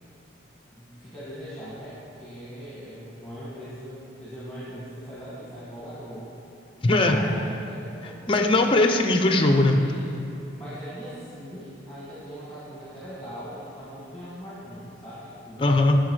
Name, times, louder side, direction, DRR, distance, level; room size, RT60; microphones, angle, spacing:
voice 1, 0.7-6.3 6.8-8.2 9.7-10.2 10.6-15.7, equal, 5° left, -11 dB, 1.9 m, -40 dB
voice 2, 6.8-7.2 8.3-9.8 15.6-16.0, left 2 dB, 25° left, 5 dB, 0.5 m, -19 dB
10.0 x 6.7 x 4.8 m, 2.9 s
head